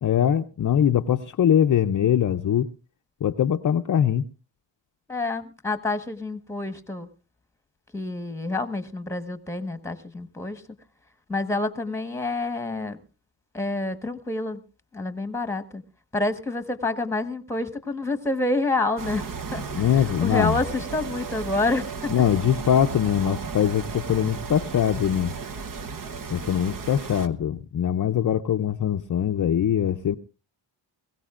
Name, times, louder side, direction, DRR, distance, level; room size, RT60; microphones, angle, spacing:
voice 1, 0.0-2.7 3.2-4.3 19.7-20.6 22.1-25.4 26.3-30.2, left 9 dB, 40° left, 0.6 m, -22 dB
voice 2, 5.1-7.1 7.9-10.6 11.3-13.0 13.5-14.6 14.9-15.8 16.1-19.3 19.5-19.7 20.2-22.1, left 2 dB, 5° left, 1.3 m, -28 dB
sound 1, 19.0-27.3, right 5 dB, 45° right, 1.1 m, -34 dB
22.0 x 16.5 x 2.5 m
cardioid pair, 85°, 46 cm